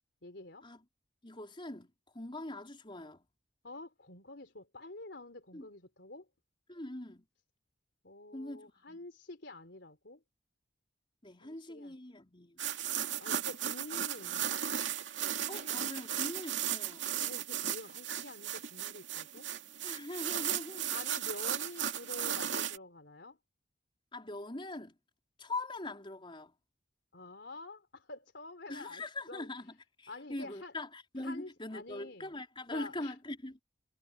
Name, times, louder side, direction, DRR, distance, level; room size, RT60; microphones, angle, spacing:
voice 1, 0.2-0.7 3.6-6.3 8.0-10.2 11.4-11.9 13.2-14.6 17.2-19.5 20.9-23.4 27.1-29.5 30.1-30.7 31.2-32.3 32.7-33.1, left 2 dB, 65° left, 4.2 m, -48 dB
voice 2, 1.2-3.3 5.5-5.7 6.7-7.3 8.3-9.1 11.2-12.6 15.5-17.1 19.8-20.9 24.1-25.0 25.4-26.5 28.7-33.6, left 2 dB, 30° left, 4.4 m, -42 dB
sound 1, 12.6-22.8, right 10 dB, 80° right, 2.4 m, -36 dB
head